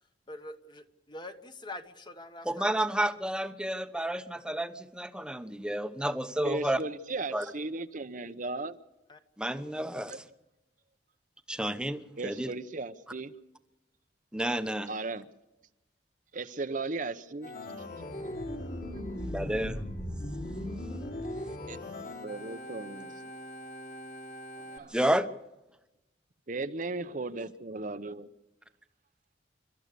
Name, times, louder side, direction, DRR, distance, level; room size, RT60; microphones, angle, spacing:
voice 1, 0.3-2.6 9.1-9.2, left 2 dB, 25° left, 8 dB, 1.4 m, -44 dB
voice 2, 2.4-6.8 7.3-7.4 9.4-10.2 11.5-12.5 14.3-14.9 19.3-19.7 24.9-25.3, right 1 dB, 5° right, 9 dB, 1.0 m, -30 dB
voice 3, 6.4-8.8 12.2-13.3 14.9-15.2 16.3-17.6 21.7-21.8 22.2-23.1 24.7-24.9 26.5-28.3, right 3 dB, 45° right, 10 dB, 0.9 m, -36 dB
Organ, 17.4-24.8, left 1 dB, 50° left, 3.3 m, -39 dB
29.0 x 13.0 x 6.9 m, 0.95 s
head